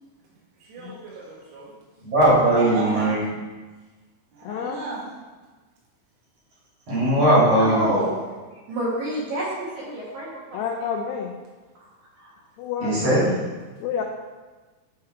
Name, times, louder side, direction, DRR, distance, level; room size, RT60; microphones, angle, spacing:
voice 1, 0.6-1.7 2.4-3.2 4.3-5.1, right 3 dB, 85° right, -3 dB, 4.0 m, -34 dB
voice 2, 2.0-3.2 6.9-7.9 12.8-13.3, right 1 dB, 40° right, -8 dB, 2.3 m, -19 dB
voice 3, 4.4-4.8 10.5-11.3 12.6-13.0 13.8-14.0, left 7 dB, 90° left, 1 dB, 2.3 m, -29 dB
voice 4, 7.6-8.1 8.7-10.9 12.2-12.3, right 1 dB, 65° right, -6 dB, 2.5 m, -28 dB
10.5 x 3.7 x 4.3 m, 1.3 s
omnidirectional pair, 5.5 m